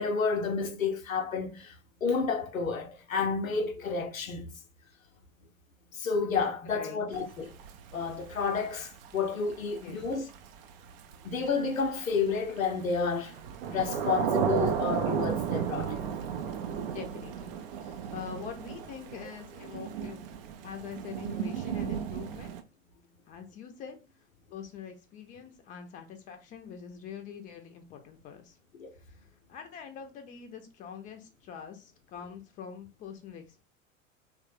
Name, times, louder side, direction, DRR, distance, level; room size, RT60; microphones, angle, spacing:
voice 1, 0.0-1.8 2.0-4.5 5.9-7.6 7.9-10.2 11.2-13.3 13.7-16.0 28.8-28.9, left 5 dB, 85° left, 0.6 m, -30 dB
Thunder / Rain, 7.1-22.6, right 8 dB, 45° right, 0.4 m, -34 dB
voice 2, 16.9-20.2 20.6-22.6 23.3-24.0 24.5-28.6 28.9-29.2 29.5-33.6, left 7 dB, 20° left, 0.5 m, -44 dB
3.0 x 2.1 x 3.2 m
figure-of-eight pair, 90°, 39 cm